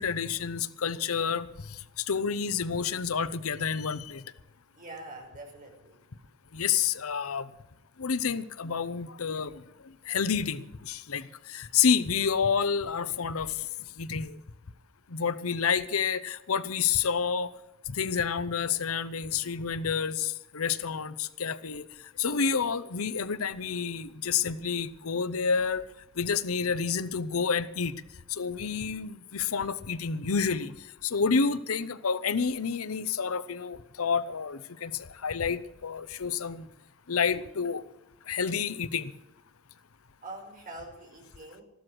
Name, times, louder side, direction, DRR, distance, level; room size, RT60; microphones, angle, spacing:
voice 1, 0.0-1.5 2.1-4.2 6.5-7.5 8.0-9.5 10.1-11.2 11.5-13.5 14.0-14.4 15.1-17.5 18.0-21.8 22.2-25.8 26.2-28.0 28.4-30.7 31.0-34.9 35.2-36.6 37.1-37.8 38.3-39.1, left 6 dB, 90° left, 15 dB, 0.8 m, -29 dB
voice 2, 4.7-6.0 40.2-41.6, right 2 dB, 40° right, 1 dB, 5.0 m, -44 dB
14.0 x 12.5 x 6.2 m, 0.89 s
head